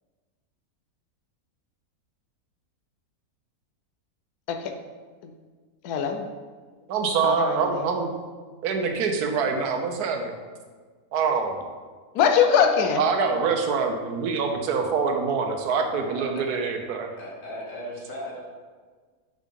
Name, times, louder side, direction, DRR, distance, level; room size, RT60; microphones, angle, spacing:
voice 1, 5.8-6.3 7.2-7.9 12.1-13.0, left 7 dB, 85° left, 6 dB, 1.2 m, -22 dB
voice 2, 6.9-8.1 8.6-10.3 11.1-11.5 13.0-17.1, right 5 dB, 90° right, 4 dB, 1.3 m, -25 dB
voice 3, 16.1-16.5 17.2-18.4, left 1 dB, 60° left, -3 dB, 1.6 m, -37 dB
5.2 x 3.7 x 5.2 m, 1.5 s
omnidirectional pair, 1.6 m